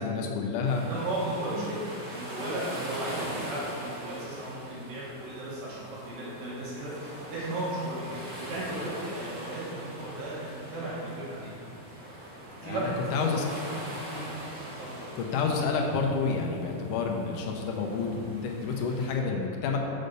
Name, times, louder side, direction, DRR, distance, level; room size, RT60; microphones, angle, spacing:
voice 1, 0.0-0.8 12.6-13.4 15.2-19.8, left 5 dB, 75° left, 1 dB, 2.2 m, -29 dB
sound 1, 0.6-19.1, right 1 dB, 40° right, 1.2 m, -42 dB
voice 2, 0.8-1.8 2.1-11.5 12.6-13.4 14.1-14.2 14.8-15.0, right 1 dB, 85° right, -8 dB, 3.1 m, -35 dB
6.5 x 5.3 x 6.6 m, 2.6 s
omnidirectional pair, 3.8 m